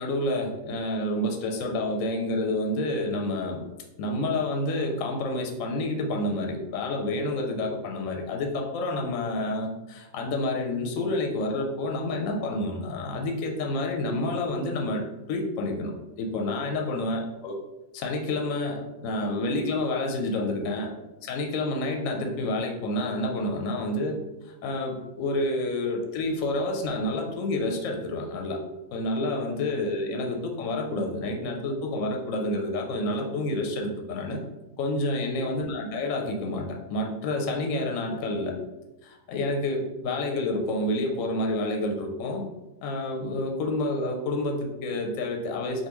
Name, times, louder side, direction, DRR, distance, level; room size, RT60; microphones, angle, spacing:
voice 1, 0.0-3.6 4.0-15.0 15.3-17.5 17.9-20.9 21.2-24.1 24.4-28.6 28.9-34.4 34.8-38.5 39.0-42.4 42.8-45.9, left 2 dB, 70° left, 2 dB, 0.9 m, -29 dB
3.5 x 2.4 x 2.9 m, 1.0 s
omnidirectional pair, 1.5 m